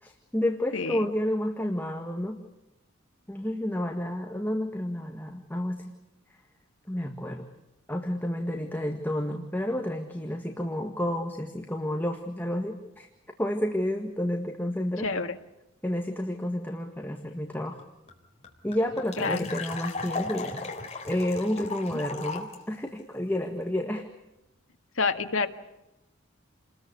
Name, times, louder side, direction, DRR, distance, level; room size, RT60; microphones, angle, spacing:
voice 1, 0.0-2.4 3.3-5.8 6.9-7.4 7.9-13.1 13.4-15.1 15.8-17.8 18.6-20.7 21.1-24.0, left 1 dB, 10° left, 3 dB, 1.8 m, -30 dB
voice 2, 0.7-1.1 15.0-15.4 19.2-19.5 25.0-25.5, left 4 dB, 80° left, 6 dB, 1.8 m, -28 dB
sound 1, 17.8-17.9 18.1-18.2 18.4-22.5, left 4 dB, 30° left, 4.0 m, -36 dB
29.5 x 20.5 x 8.2 m, 0.94 s
head